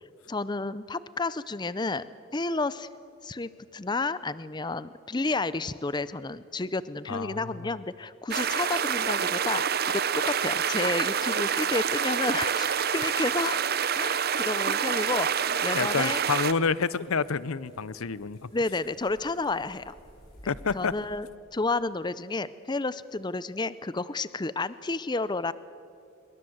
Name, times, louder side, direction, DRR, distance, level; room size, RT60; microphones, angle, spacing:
voice 1, 0.3-2.1 2.3-2.9 3.2-13.6 14.0-16.2 18.5-19.9 20.7-21.3 21.5-25.5, left 3 dB, 20° left, 16 dB, 0.5 m, -31 dB
voice 2, 7.1-7.4 15.7-18.5 20.5-20.9, left 5 dB, 80° left, 19 dB, 0.7 m, -28 dB
sound 1, 8.3-16.5, right 7 dB, 45° right, 0.8 m, -27 dB
sound 2, 14.3-21.2, equal, 45° left, 8.0 m, -56 dB
26.0 x 23.5 x 7.9 m, 2.5 s
head